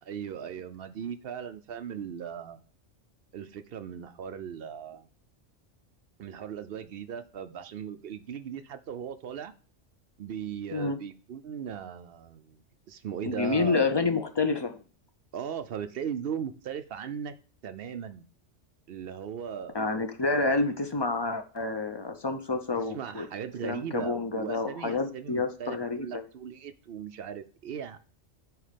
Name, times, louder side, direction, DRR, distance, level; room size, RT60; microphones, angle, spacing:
voice 1, 0.0-2.6 3.3-5.1 6.2-9.5 10.2-12.6 12.9-14.0 15.3-17.3 17.6-18.3 18.9-19.8 20.3-20.7 22.8-28.0, right 8 dB, 60° right, 10 dB, 0.7 m, -38 dB
voice 2, 13.2-14.8 19.7-23.3 23.6-26.1, left 3 dB, 40° left, 7 dB, 0.4 m, -28 dB
9.2 x 3.2 x 5.1 m, 0.39 s
omnidirectional pair, 1.2 m